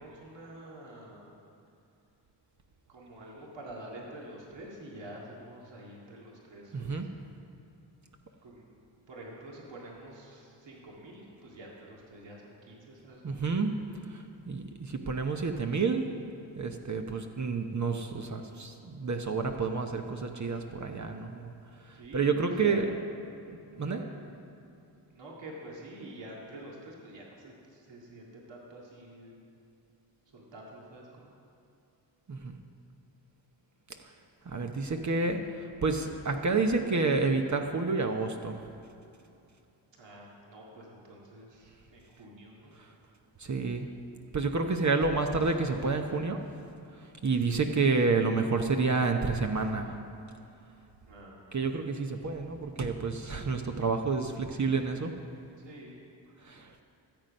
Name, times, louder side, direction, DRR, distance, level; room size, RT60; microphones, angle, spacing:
voice 1, 0.0-1.4 2.9-7.0 8.4-8.7 9.1-13.7 21.9-22.9 23.9-24.2 24.6-24.7 25.1-29.4 30.3-31.3 39.9-42.7 51.0-51.4 55.6-56.0, right 1 dB, 65° right, -3 dB, 2.2 m, -47 dB
voice 2, 6.7-7.1 13.2-13.7 14.1-16.1 16.6-21.5 22.1-22.9 23.5-24.0 32.3-32.6 34.5-38.6 43.4-43.9 44.3-46.4 47.2-49.9 51.5-55.1 56.5-56.7, right 4 dB, 40° right, 4 dB, 0.9 m, -29 dB
13.5 x 7.6 x 5.4 m, 2.7 s
cardioid pair, 60°, 47 cm